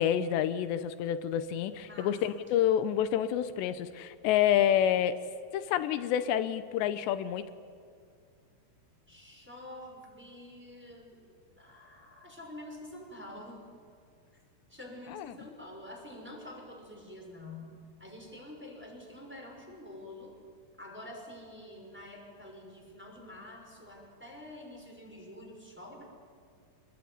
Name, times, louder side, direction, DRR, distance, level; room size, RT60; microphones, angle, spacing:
voice 1, 0.0-5.2 5.5-7.5 15.1-15.3, left 10 dB, 90° left, 11 dB, 3.1 m, -28 dB
voice 2, 1.8-2.2 9.1-11.3 11.5-13.6 14.7-20.3 20.8-26.0, left 1 dB, ahead, 0 dB, 5.5 m, -47 dB
27.0 x 21.0 x 9.7 m, 2.3 s
omnidirectional pair, 4.9 m